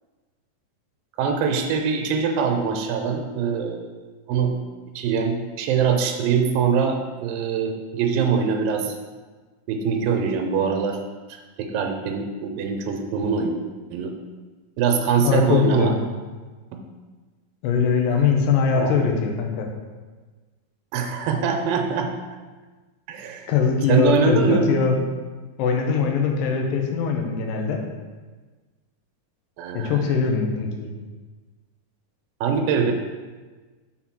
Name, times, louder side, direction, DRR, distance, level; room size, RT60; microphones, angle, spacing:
voice 1, 1.2-3.9 4.3-4.6 5.0-9.0 9.7-11.0 11.3-13.5 13.9-14.1 14.8-15.9 16.7-16.8 18.7-19.1 20.9-22.1 23.1-23.5 23.9-24.7 29.6-30.0 32.4-32.9, right 6 dB, 80° right, 4 dB, 2.4 m, -23 dB
voice 2, 15.2-15.9 17.6-19.7 23.5-25.0 25.6-27.8 29.7-30.9, left 5 dB, 80° left, 2 dB, 2.5 m, -21 dB
6.0 x 4.0 x 5.9 m, 1.3 s
omnidirectional pair, 4.1 m